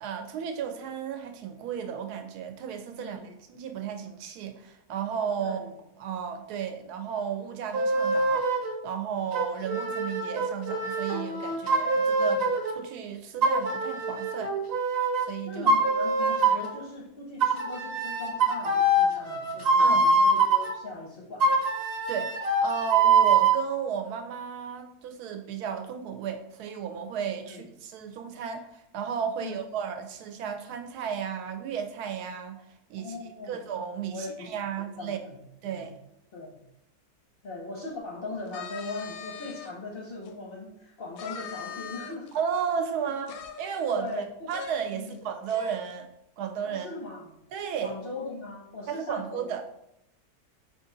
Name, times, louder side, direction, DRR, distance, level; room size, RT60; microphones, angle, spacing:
voice 1, 0.0-3.2 3.5-5.6 6.0-8.5 8.8-14.5 15.2-15.7 16.5-16.6 19.8-20.1 22.1-32.6 32.9-35.2 35.6-35.9 42.3-46.1 46.4-46.9 47.5-47.9 48.9-49.6, right 7 dB, 80° right, 6 dB, 1.1 m, -34 dB
voice 2, 3.0-3.3 5.4-5.7 12.2-12.5 15.5-21.5 27.4-27.7 29.4-29.6 33.0-33.6 34.1-34.5 35.0-35.4 35.7-35.9 36.3-36.5 37.4-42.3 43.0-43.1 43.9-44.5 44.9-45.2 46.6-47.4 47.8-49.4, left 3 dB, 50° left, -1 dB, 0.6 m, -39 dB
sound 1, 7.7-8.7 9.3-12.7 13.4-15.3 15.7-16.7 17.4-20.7 21.4-23.6, right 3 dB, 50° right, 0.9 m, -24 dB
sound 2, 38.5-39.7 40.2-40.3 41.2-42.4 43.3-44.2 44.5-44.7 45.1-45.2 45.5-45.9, left 7 dB, 90° left, 1.1 m, -41 dB
5.0 x 2.5 x 3.8 m, 0.79 s
omnidirectional pair, 1.7 m